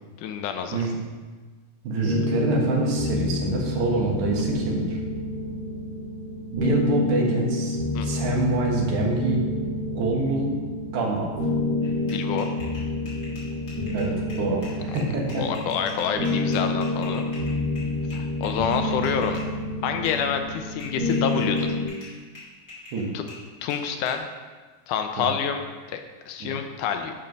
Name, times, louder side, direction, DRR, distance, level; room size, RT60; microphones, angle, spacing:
voice 1, 0.2-0.9 7.9-8.1 12.1-12.5 15.4-17.2 18.1-19.4 19.8-21.7 23.1-23.2 23.6-24.3 24.9-26.0 26.3-27.1, left 7 dB, 80° left, 6 dB, 2.0 m, -28 dB
voice 2, 1.8-5.0 6.5-9.5 10.0-10.5 10.9-11.3 13.9-15.5 22.9-23.1 25.2-25.3 26.4-26.5, right 3 dB, 70° right, -1 dB, 2.7 m, -26 dB
sound 1, 2.0-21.9, left 2 dB, 55° right, 2.2 m, -28 dB
sound 2, 11.8-19.5 20.0-20.3 20.8-24.2, left 3 dB, 30° left, 2.8 m, -44 dB
11.0 x 4.4 x 5.3 m, 1.4 s
omnidirectional pair, 3.7 m